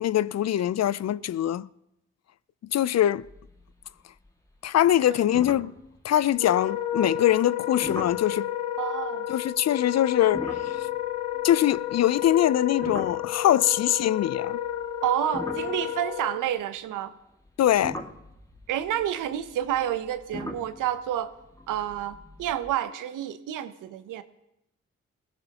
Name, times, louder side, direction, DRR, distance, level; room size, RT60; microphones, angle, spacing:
voice 1, 0.0-1.7 2.7-3.3 4.6-5.7 6.0-8.5 9.3-10.9 11.4-14.6 17.6-18.0, left 12 dB, 55° left, 0.5 m, -23 dB
sound 1, 3.2-3.9 4.2-4.6 4.9-5.0 5.3-6.7 7.8-8.3 10.2-13.8 14.6-16.8 17.4-22.7, left 1 dB, 10° left, 2.0 m, -41 dB
Wind instrument woodwind instrument, 6.3-16.4, left 11 dB, 85° left, 0.9 m, -31 dB
voice 2, 8.8-9.3 15.0-17.1 18.7-21.3 21.7-24.2, right 11 dB, 85° right, 0.8 m, -29 dB
21.5 x 16.0 x 2.9 m
supercardioid pair, 40°, 31 cm